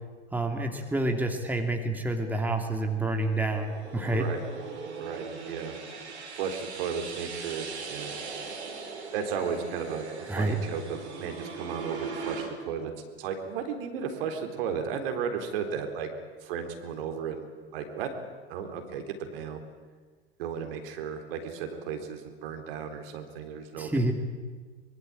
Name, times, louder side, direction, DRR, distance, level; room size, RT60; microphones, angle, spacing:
voice 1, 0.3-4.3 10.3-10.6 23.8-24.1, right 2 dB, 5° right, 3 dB, 3.0 m, -28 dB
sound 1, 2.4-12.5, right 5 dB, 75° right, 4.8 m, -40 dB
voice 2, 4.0-4.4 5.0-5.7 6.3-8.1 9.1-12.9 13.2-16.1 16.4-17.5 17.7-18.1 18.5-19.6 20.4-24.1, right 7 dB, 55° right, 6 dB, 3.9 m, -34 dB
24.5 x 22.5 x 9.0 m, 1.5 s
figure-of-eight pair, 85°, 33 cm